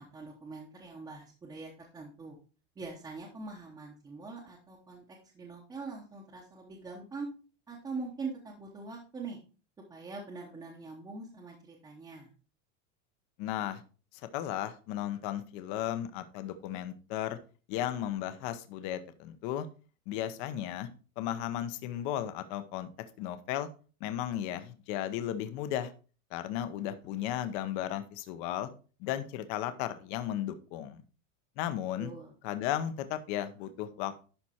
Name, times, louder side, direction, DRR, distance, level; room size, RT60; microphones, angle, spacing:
voice 1, 0.0-2.4 2.8-5.0 5.3-7.3 7.7-9.4 9.9-12.3 32.0-32.3, right 4 dB, 10° right, -2 dB, 0.8 m, -43 dB
voice 2, 13.4-13.8 14.3-17.4 17.7-19.7 20.1-20.9 21.2-22.9 23.2-23.7 24.0-25.9 26.3-28.7 29.0-31.0 31.6-32.1 32.4-34.3, left 11 dB, 40° left, 11 dB, 0.8 m, -35 dB
11.0 x 4.3 x 4.3 m, 0.36 s
supercardioid pair, 175°, 40 cm